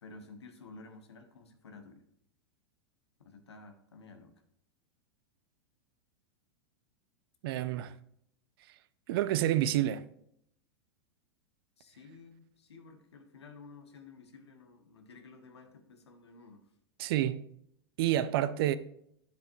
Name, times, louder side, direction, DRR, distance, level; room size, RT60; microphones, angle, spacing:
voice 1, 0.0-2.0 3.2-4.3 7.6-8.0 11.8-16.7, left 3 dB, 90° left, 1.4 m, -53 dB
voice 2, 7.4-7.9 9.1-10.0 17.0-17.5 18.0-18.8, right 12 dB, 60° right, 0.6 m, -28 dB
9.8 x 7.0 x 3.1 m
hypercardioid pair, 110°, 14 cm